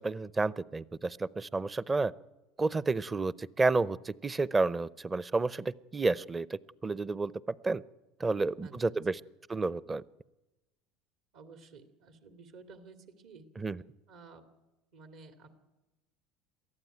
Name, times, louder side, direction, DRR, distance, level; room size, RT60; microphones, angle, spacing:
voice 1, 0.0-2.1 2.6-7.3 7.6-7.8 8.2-9.2 9.5-10.0 13.6-13.8, right 3 dB, 20° right, 20 dB, 0.6 m, -30 dB
voice 2, 8.6-9.0 11.3-13.4 14.1-14.4 14.9-15.5, right 4 dB, 70° right, 7 dB, 2.4 m, -53 dB
22.5 x 14.5 x 9.2 m, 1.0 s
supercardioid pair, 100°, 0 cm